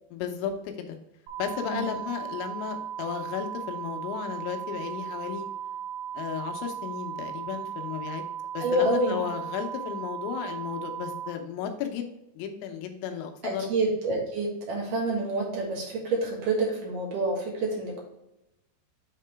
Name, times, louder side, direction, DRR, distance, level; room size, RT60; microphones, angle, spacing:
voice 1, 0.1-1.0 1.4-5.5 6.1-8.2 8.5-12.1 12.4-13.7, left 8 dB, 85° left, 4 dB, 3.2 m, -34 dB
sound 1, 1.3-11.3, right 9 dB, 85° right, 3.5 m, -36 dB
voice 2, 8.6-9.2 13.4-18.0, right 2 dB, 60° right, -2 dB, 2.3 m, -28 dB
9.1 x 3.7 x 3.3 m, 0.86 s
omnidirectional pair, 5.3 m